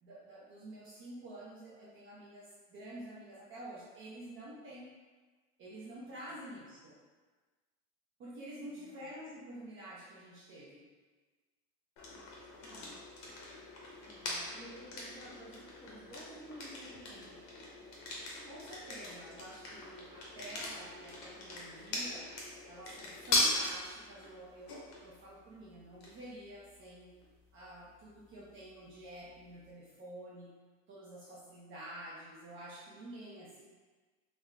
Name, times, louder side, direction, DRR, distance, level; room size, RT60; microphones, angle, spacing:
voice 1, 0.0-4.9 5.6-7.0 8.2-10.8 14.2-14.5 18.5-22.3 22.7-27.1 27.5-30.5 30.9-33.6, right 1 dB, 35° right, -6 dB, 0.5 m, -49 dB
voice 2, 8.7-9.1 12.6-12.9 14.0-17.4, equal, 10° left, -10 dB, 0.8 m, -53 dB
sound 1, 12.0-29.7, left 1 dB, 50° left, 0.9 m, -41 dB
3.5 x 2.1 x 3.2 m, 1.4 s
cardioid pair, 160°, 35 cm